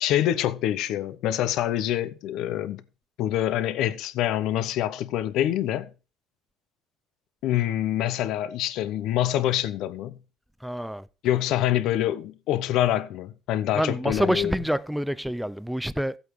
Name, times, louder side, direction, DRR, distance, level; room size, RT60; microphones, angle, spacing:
voice 1, 0.0-2.8 3.2-5.9 7.4-10.2 11.2-14.5, left 12 dB, 70° left, 0.7 m, -26 dB
voice 2, 10.6-11.1 13.7-16.2, equal, ahead, 0.5 m, -27 dB
15.0 x 8.2 x 3.1 m
supercardioid pair, 85°, 0 cm